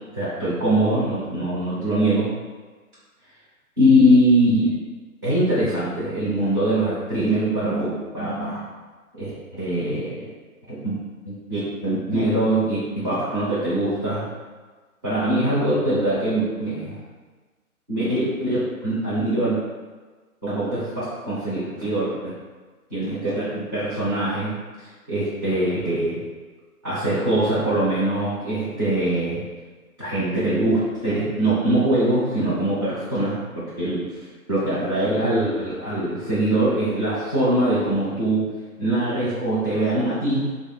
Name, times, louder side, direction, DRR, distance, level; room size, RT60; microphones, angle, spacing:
voice 1, 0.1-2.3 3.8-4.8 5.2-8.6 9.2-10.3 10.8-11.0 11.5-14.3 15.0-17.0 17.9-19.5 20.4-22.3 22.9-24.5 24.8-26.2 26.8-29.4 30.0-34.2 34.5-38.5 38.8-40.4, right 1 dB, 15° right, -11 dB, 0.5 m, -22 dB
3.1 x 2.4 x 4.2 m, 1.4 s
figure-of-eight pair, 140°, 44 cm